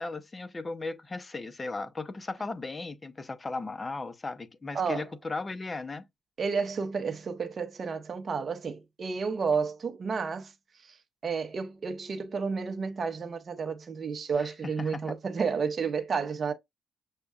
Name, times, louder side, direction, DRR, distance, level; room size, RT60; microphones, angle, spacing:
voice 1, 0.0-6.0 14.4-14.5 14.9-15.0, left 3 dB, 25° left, 0.6 m, -36 dB
voice 2, 4.7-5.1 6.4-10.5 10.8-11.0 11.2-16.5, right 5 dB, 45° right, 0.6 m, -31 dB
6.4 x 2.3 x 2.4 m
supercardioid pair, 70°, 0 cm